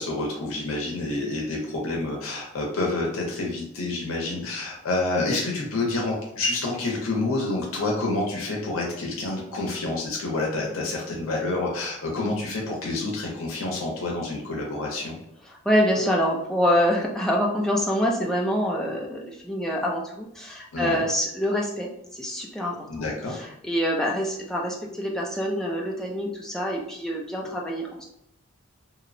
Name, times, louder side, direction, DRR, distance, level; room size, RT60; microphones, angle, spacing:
voice 1, 0.0-15.2 20.7-21.0 22.9-23.3, left 2 dB, 85° left, -1 dB, 0.6 m, -28 dB
voice 2, 15.7-28.0, equal, 5° left, -2 dB, 0.3 m, -26 dB
2.8 x 2.0 x 2.5 m, 0.79 s
head